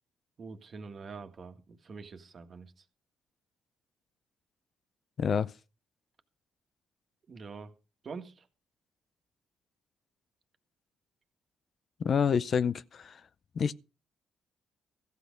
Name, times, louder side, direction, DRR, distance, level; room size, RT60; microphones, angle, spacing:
voice 1, 0.4-2.7 7.3-7.7 8.0-8.4, right 4 dB, 45° right, 1.6 m, -45 dB
voice 2, 5.2-5.5 12.0-13.2 13.6-13.7, left 7 dB, 50° left, 0.5 m, -28 dB
14.5 x 8.4 x 5.2 m
cardioid pair, 90°, 0 cm